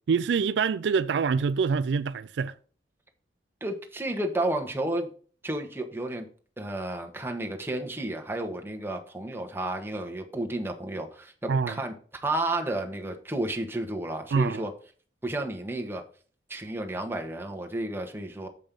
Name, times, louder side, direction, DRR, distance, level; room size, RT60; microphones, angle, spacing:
voice 1, 0.1-2.5 11.5-11.8 14.3-14.6, right 5 dB, 70° right, 0.4 m, -25 dB
voice 2, 3.6-5.1 5.4-6.2 6.6-11.9 12.2-14.7 15.2-16.0 16.5-18.5, right 1 dB, 15° right, 1.2 m, -32 dB
7.4 x 5.3 x 5.2 m
head